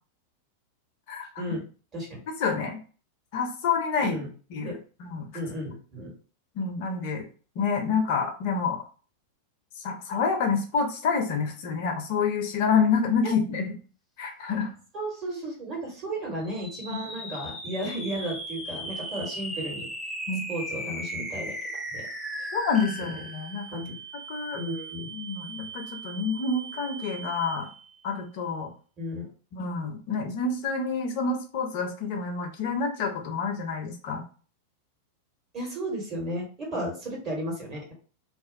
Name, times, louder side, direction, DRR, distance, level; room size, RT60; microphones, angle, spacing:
voice 1, 2.4-2.8 3.3-4.2 4.5-5.3 6.6-7.3 7.6-8.8 9.8-13.7 14.2-14.7 20.3-20.4 22.5-23.8 24.3-24.6 25.1-27.7 28.0-28.7 29.5-34.2, left 5 dB, 45° left, 4 dB, 0.6 m, -28 dB
voice 2, 5.3-6.1 14.9-19.9 20.5-21.6 21.9-22.0 22.4-22.5 23.0-23.1 23.7-23.9 24.6-25.1 29.0-29.3 30.1-30.2 35.5-37.9, right 1 dB, 30° right, -2 dB, 1.4 m, -34 dB
sound 1, 16.4-27.9, right 1 dB, ahead, 0.4 m, -38 dB
2.6 x 2.1 x 2.6 m, 0.38 s
figure-of-eight pair, 90°, 0 cm